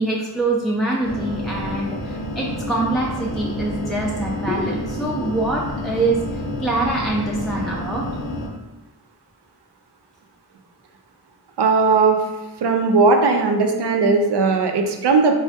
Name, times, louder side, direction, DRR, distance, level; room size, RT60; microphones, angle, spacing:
voice 1, 0.0-8.1, right 2 dB, ahead, -3 dB, 0.3 m, -24 dB
sound 1, 1.0-8.5, left 1 dB, 90° left, 0.6 m, -29 dB
voice 2, 11.6-12.2 12.6-15.3, right 4 dB, 80° right, 4 dB, 0.5 m, -17 dB
3.4 x 2.1 x 2.7 m, 1.0 s
wide cardioid pair, 45°, 40 cm